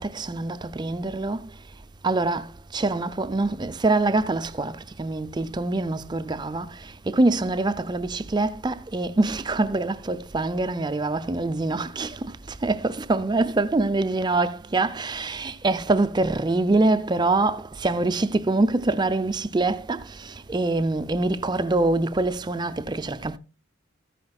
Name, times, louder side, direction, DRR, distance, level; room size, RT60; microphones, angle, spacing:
voice 1, 0.0-1.5 2.0-23.4, right 2 dB, 20° right, 0.4 m, -25 dB
13.5 x 9.6 x 2.3 m
head